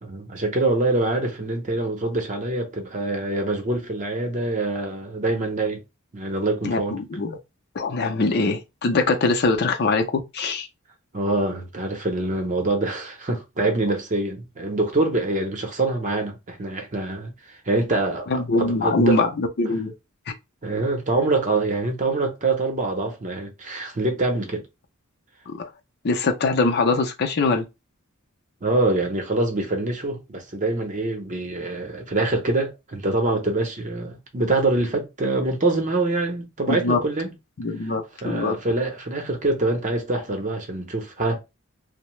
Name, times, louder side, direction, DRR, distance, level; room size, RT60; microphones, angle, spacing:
voice 1, 0.0-5.8 6.1-7.0 11.1-17.3 17.7-19.2 20.6-24.6 28.6-37.3 38.2-41.4, right 2 dB, 35° right, 0.7 m, -25 dB
voice 2, 6.6-7.4 7.7-10.7 18.3-19.9 25.5-25.7 26.0-27.6 36.7-37.0 37.6-38.6, left 3 dB, 50° left, 0.5 m, -23 dB
2.7 x 2.0 x 3.1 m
head